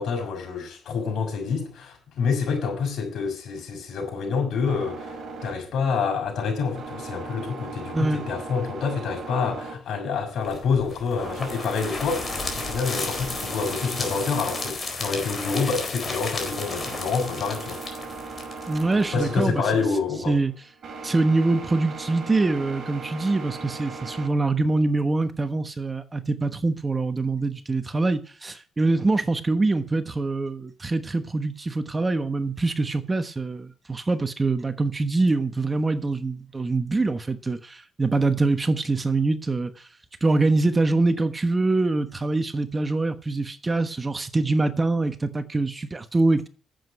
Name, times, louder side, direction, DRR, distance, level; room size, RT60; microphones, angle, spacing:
voice 1, 0.0-5.2 5.4-17.8 19.1-20.3, left 5 dB, 70° left, 6.3 m, -27 dB
sound 1, 4.6-24.3, right 4 dB, 50° right, 4.4 m, -39 dB
sound 2, 10.4-19.3, left 3 dB, 35° left, 4.1 m, -33 dB
voice 2, 18.7-19.6 20.3-20.5 21.0-39.9 40.2-46.5, right 3 dB, 25° right, 1.2 m, -24 dB
10.5 x 8.2 x 7.9 m
cardioid pair, 90°, 0 cm